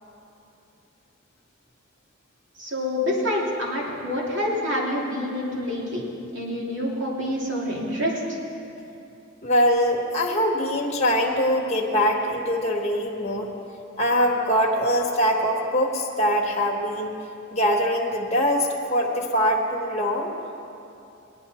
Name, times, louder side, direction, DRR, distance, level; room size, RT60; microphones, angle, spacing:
voice 1, 2.6-6.0 6.3-8.4, left 1 dB, 60° right, -4 dB, 2.7 m, -27 dB
voice 2, 9.4-13.5 14.0-17.1 17.5-20.3, equal, 30° left, -2 dB, 1.2 m, -23 dB
18.5 x 11.0 x 4.2 m, 2.8 s
head